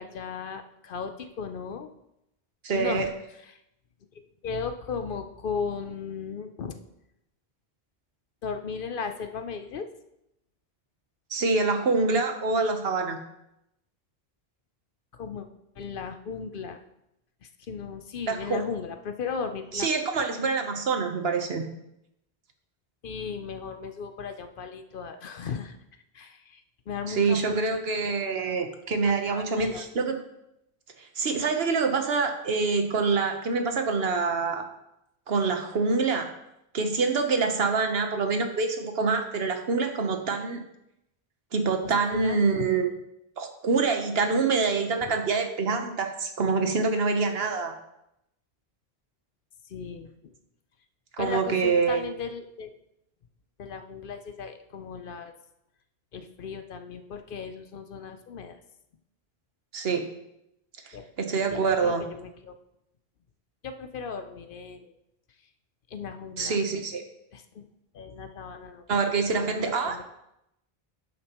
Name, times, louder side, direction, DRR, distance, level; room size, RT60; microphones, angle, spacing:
voice 1, 0.0-1.9 2.7-3.6 4.4-6.8 8.4-9.9 15.1-15.5 15.8-16.8 17.4-19.9 20.1-20.3 23.0-25.8 26.1-27.6 28.0-28.6 28.9-29.9 41.8-42.7 45.0-45.1 49.7-50.1 51.2-52.7 53.6-55.3 56.1-58.6 60.9-61.1 61.5-62.6 63.6-64.9 65.9-66.6 67.3-67.7 67.9-70.0, left 5 dB, 60° left, 8 dB, 0.8 m, -36 dB
voice 2, 2.6-3.1 11.3-13.2 18.3-18.6 19.7-21.6 27.1-30.2 31.0-34.6 35.3-36.3 36.7-40.6 41.5-42.9 43.4-47.7 51.2-52.0 59.7-60.0 60.9-62.0 66.4-67.0 68.9-70.1, right 4 dB, 75° right, 5 dB, 1.2 m, -26 dB
11.0 x 6.6 x 3.0 m, 0.83 s
omnidirectional pair, 1.0 m